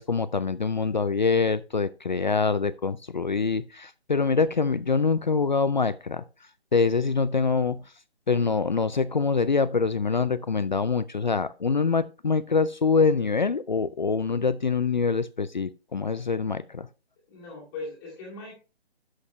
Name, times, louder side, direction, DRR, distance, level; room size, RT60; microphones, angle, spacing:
voice 1, 0.0-6.2 6.7-7.8 8.3-16.9, left 4 dB, 45° left, 0.4 m, -25 dB
voice 2, 17.3-18.5, left 3 dB, 10° left, 2.2 m, -39 dB
11.0 x 6.5 x 3.0 m
hypercardioid pair, 170°, 32 cm